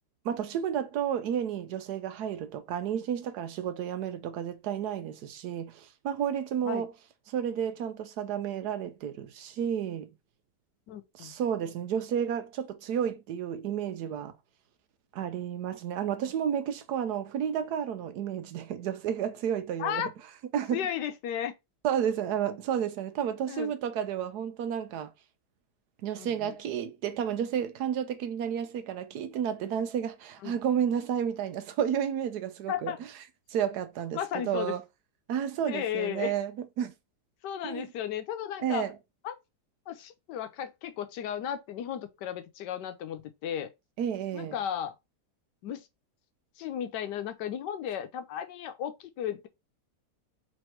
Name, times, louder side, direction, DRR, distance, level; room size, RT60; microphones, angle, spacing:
voice 1, 0.2-6.9 7.3-10.1 11.2-14.3 15.1-20.0 20.5-20.8 21.8-25.1 26.0-32.9 33.5-34.2 34.5-34.8 35.3-36.5 36.8-36.9 37.6-37.8 38.6-38.9 44.0-44.5, right 9 dB, 75° right, 1.2 m, -31 dB
voice 2, 10.9-11.3 19.8-20.1 20.7-21.5 23.5-23.7 26.2-26.5 30.4-30.6 32.7-33.0 34.1-34.8 35.7-36.4 37.4-38.8 39.2-39.3 39.9-43.7 44.3-44.9 45.6-45.9 46.6-49.5, left 9 dB, 85° left, 1.3 m, -34 dB
3.4 x 3.2 x 4.3 m
omnidirectional pair, 1.8 m